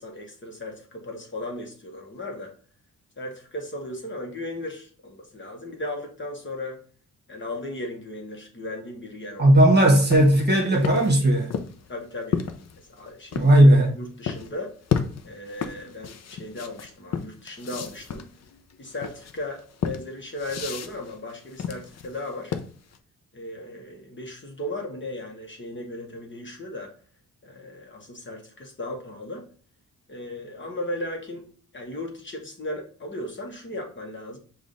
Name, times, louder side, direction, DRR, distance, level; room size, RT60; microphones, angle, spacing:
voice 1, 0.0-2.5 3.2-6.8 7.3-9.6 11.9-12.4 12.8-14.7 15.2-18.3 18.8-22.5 23.3-26.9 27.4-29.5 30.1-31.4 31.7-34.4, left 1 dB, 35° left, 1.1 m, -36 dB
voice 2, 9.4-11.5 13.3-14.0, right 1 dB, 30° right, 1.2 m, -16 dB
sound 1, 10.0-13.6 14.3-14.5 14.9-23.0, left 7 dB, 50° left, 0.6 m, -32 dB
4.9 x 2.4 x 3.8 m
cardioid pair, 85°, 33 cm